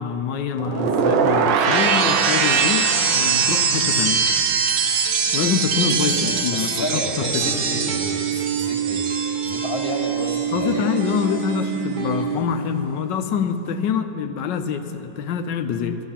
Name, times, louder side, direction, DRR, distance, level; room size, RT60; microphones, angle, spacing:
voice 1, 0.0-4.2 5.3-7.5 10.5-16.0, left 7 dB, 85° left, 8 dB, 1.4 m, -25 dB
sound 1, 0.6-10.7 11.0-11.4, right 6 dB, 90° right, 1.5 m, -22 dB
sound 2, 1.8-12.9, right 7 dB, 55° right, 1.7 m, -30 dB
Electric guitar, 4.8-12.2, right 2 dB, 30° right, 1.4 m, -38 dB
voice 2, 6.5-9.1 9.5-10.9, left 1 dB, 35° left, 1 dB, 1.8 m, -30 dB
15.5 x 13.0 x 5.8 m, 2.9 s
omnidirectional pair, 1.9 m